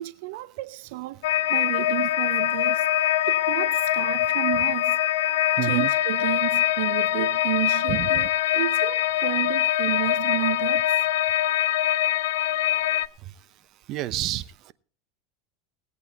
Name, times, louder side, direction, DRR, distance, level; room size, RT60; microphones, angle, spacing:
voice 1, 0.0-5.3 5.6-11.3, right 18 dB, 70° right, 0.5 m, -32 dB
sound 1, 1.2-13.1, left 13 dB, 85° left, 0.8 m, -23 dB
voice 2, 5.6-5.9 7.9-8.3 13.2-13.3 13.9-14.7, right 14 dB, 45° right, 0.8 m, -29 dB
19.0 x 8.5 x 4.1 m
supercardioid pair, 140°, 0 cm